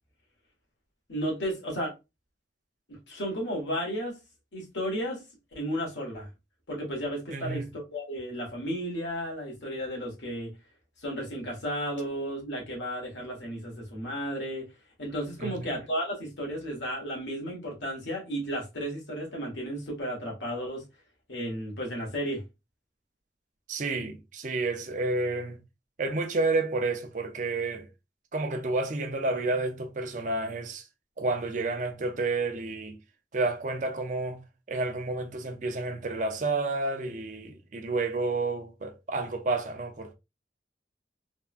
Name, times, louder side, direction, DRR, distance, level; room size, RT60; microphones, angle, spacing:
voice 1, 1.1-1.9 2.9-4.1 4.5-5.2 5.5-6.3 6.7-10.6 11.0-14.7 15.0-20.8 21.3-22.4, equal, 85° left, 1.5 m, -33 dB
voice 2, 7.3-7.7 15.4-15.7 23.7-25.6 26.0-27.9 28.3-30.8 31.2-33.0 33.3-40.1, right 3 dB, 45° right, 0.5 m, -30 dB
3.4 x 2.2 x 2.4 m
head